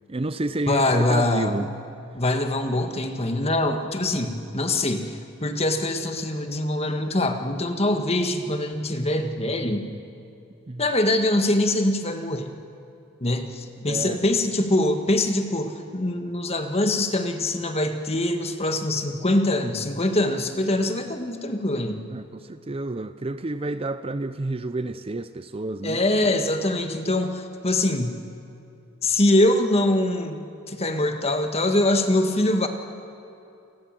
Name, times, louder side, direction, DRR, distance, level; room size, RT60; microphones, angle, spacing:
voice 1, 0.1-1.7 10.7-10.8 13.9-14.2 22.1-26.0, right 2 dB, 25° right, 11 dB, 0.5 m, -29 dB
voice 2, 0.7-1.7 2.1-9.8 10.8-12.5 13.2-22.0 25.8-28.2 29.0-30.4 30.7-32.7, left 1 dB, 25° left, 6 dB, 1.7 m, -23 dB
29.0 x 19.5 x 7.7 m, 2.6 s
head